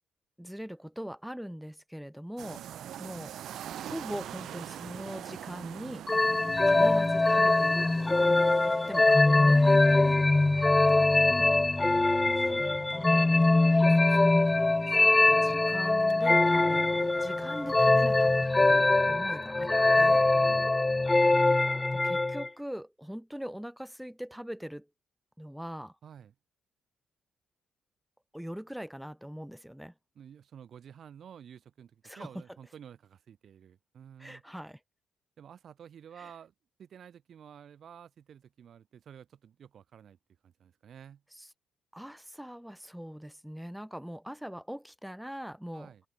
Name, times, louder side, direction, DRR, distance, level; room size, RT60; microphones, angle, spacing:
voice 1, 0.4-2.6 3.0-3.3 3.8-6.0 6.6-8.2 8.7-10.2 14.1-16.9 17.2-20.3 21.9-24.9 25.4-25.9 28.3-29.9 32.0-32.3 34.2-34.8 36.2-36.3 41.3-41.5 41.9-45.9, equal, ahead, 3.4 m, -41 dB
sound 1, 2.4-18.5, right 11 dB, 75° right, 4.2 m, -46 dB
voice 2, 2.7-3.0 6.2-6.9 10.5-12.9 13.1-13.9 20.3-20.7 26.0-26.3 30.1-34.4 35.4-36.5 36.8-40.2 40.4-41.2 45.7-46.0, right 8 dB, 55° right, 2.7 m, -51 dB
sound 2, 6.1-22.5, left 2 dB, 15° left, 0.4 m, -23 dB
cardioid pair, 125°, 0 cm